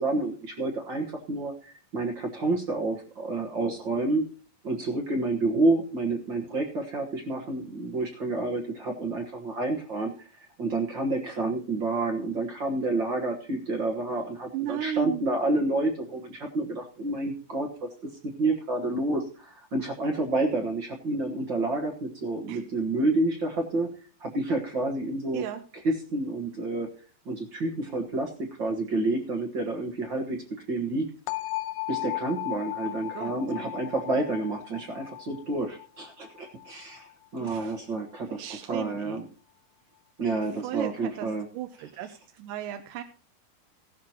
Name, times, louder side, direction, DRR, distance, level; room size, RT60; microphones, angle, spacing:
voice 1, 0.0-4.2 4.6-18.1 18.4-23.9 24.2-25.4 25.8-26.9 27.2-30.4 30.7-31.1 31.9-38.4 38.7-39.2 40.2-41.5, right 2 dB, 55° right, 1 dB, 1.3 m, -29 dB
voice 2, 14.5-15.3 22.5-22.6 25.3-25.6 32.9-33.3 37.4-37.8 38.3-39.2 40.5-43.0, right 12 dB, 75° right, 6 dB, 2.2 m, -35 dB
sound 1, 31.3-37.1, left 18 dB, 85° left, 2.5 m, -36 dB
17.0 x 12.5 x 2.9 m, 0.39 s
omnidirectional pair, 4.0 m